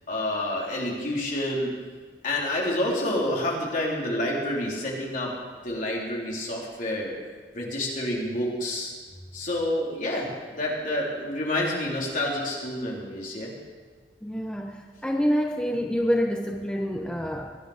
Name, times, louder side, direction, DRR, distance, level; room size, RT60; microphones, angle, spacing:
voice 1, 0.1-1.7 2.2-5.3 5.6-7.1 7.5-8.9 9.3-13.5, left 1 dB, 50° left, -3 dB, 3.6 m, -28 dB
voice 2, 14.2-17.6, equal, 5° left, 3 dB, 0.7 m, -27 dB
21.5 x 10.5 x 5.0 m, 1.5 s
head